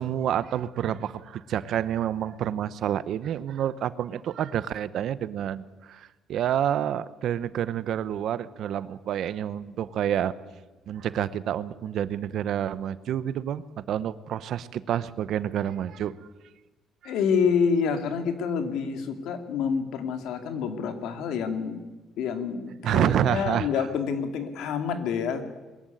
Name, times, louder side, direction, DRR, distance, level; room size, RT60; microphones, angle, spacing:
voice 1, 0.0-10.3 10.9-16.1 17.0-17.1 22.8-23.7, right 10 dB, 55° right, 16 dB, 0.8 m, -28 dB
voice 2, 17.0-21.8 22.2-25.4, left 6 dB, 75° left, 7 dB, 2.4 m, -27 dB
21.5 x 14.0 x 9.3 m, 1.2 s
cardioid pair, 155°, 0 cm